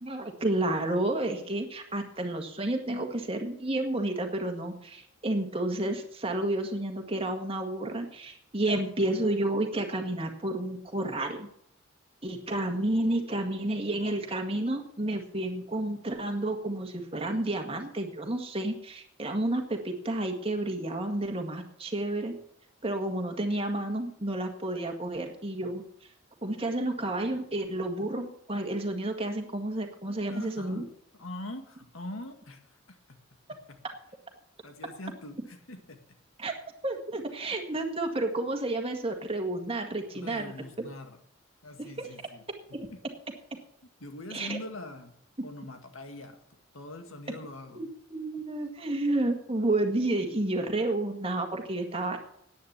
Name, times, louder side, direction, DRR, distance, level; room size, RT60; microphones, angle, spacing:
voice 1, 0.0-11.5 12.2-22.3 22.8-25.8 26.4-30.8 36.4-36.5 36.8-40.5 40.8-40.9 41.8-41.9 42.7-42.8 44.3-44.6 47.8-52.2, right 1 dB, 30° right, 4 dB, 1.9 m, -31 dB
voice 2, 30.0-30.9 31.2-33.0 34.6-36.0 40.1-41.2 41.6-42.4 44.0-45.1 45.4-46.4 46.7-47.9, left 1 dB, 85° left, 6 dB, 2.0 m, -43 dB
10.0 x 9.6 x 8.1 m, 0.72 s
head